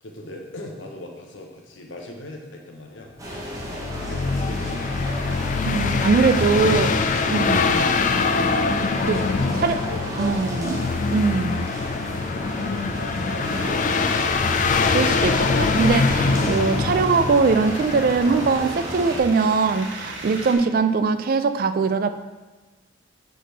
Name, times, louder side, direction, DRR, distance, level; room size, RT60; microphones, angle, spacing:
voice 1, 0.0-5.0 6.2-6.4 9.0-10.5 12.1-14.1, left 1 dB, 85° left, 1 dB, 0.9 m, -39 dB
sound 1, 3.2-19.2, equal, 15° right, 0.8 m, -33 dB
sound 2, 3.4-18.6, left 4 dB, 40° left, 0.3 m, -24 dB
voice 2, 5.7-6.9 7.3-7.9 9.1-9.2 9.6-9.8 10.2-11.7 14.9-22.1, right 4 dB, 50° right, 10 dB, 0.3 m, -21 dB
sound 3, 13.4-20.6, right 2 dB, 75° right, 1.0 m, -38 dB
5.9 x 5.1 x 3.4 m, 1.2 s
head